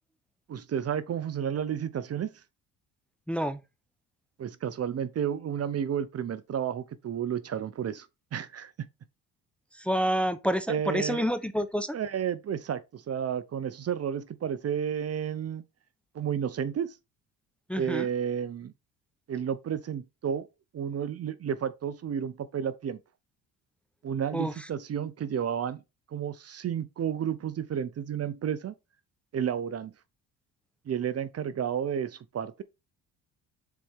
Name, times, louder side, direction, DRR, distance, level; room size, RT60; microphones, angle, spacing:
voice 1, 0.5-2.3 4.4-8.1 8.3-8.9 10.7-11.2 11.9-15.6 16.1-16.9 17.8-18.7 19.3-20.5 20.7-23.0 24.0-25.8 26.1-28.7 29.3-29.9 30.9-32.6, right 8 dB, 40° right, 0.7 m, -31 dB
voice 2, 3.3-3.6 9.8-12.0 17.7-18.1 24.3-24.5, equal, 5° left, 0.7 m, -28 dB
7.0 x 4.3 x 3.5 m
supercardioid pair, 80°, 37 cm